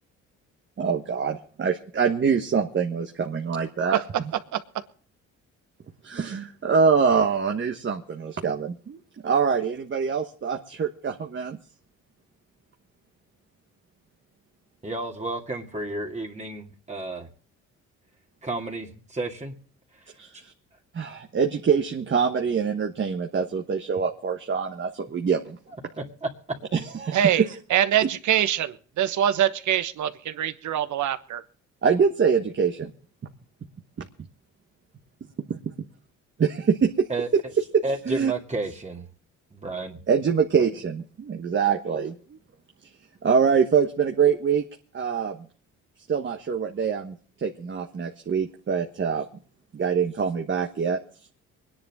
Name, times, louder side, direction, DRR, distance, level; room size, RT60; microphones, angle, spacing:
voice 1, 0.8-4.3 6.0-11.6 20.2-20.5 20.9-25.6 26.7-27.3 31.8-32.9 34.0-34.1 35.5-35.7 36.4-37.1 37.7-38.3 40.1-42.4 43.2-44.6 44.9-45.4 46.1-49.3 49.7-51.0, right 6 dB, 40° right, 3 dB, 1.4 m, -24 dB
voice 2, 14.8-17.3 18.4-19.5 26.0-26.6 27.3-27.4 37.1-37.3 37.8-39.1 39.5-40.0, right 2 dB, 25° right, 1 dB, 2.2 m, -31 dB
voice 3, 27.1-27.4 27.7-31.4, right 10 dB, 75° right, 12 dB, 1.2 m, -24 dB
24.0 x 10.5 x 3.6 m, 0.43 s
cardioid pair, 90°, 30 cm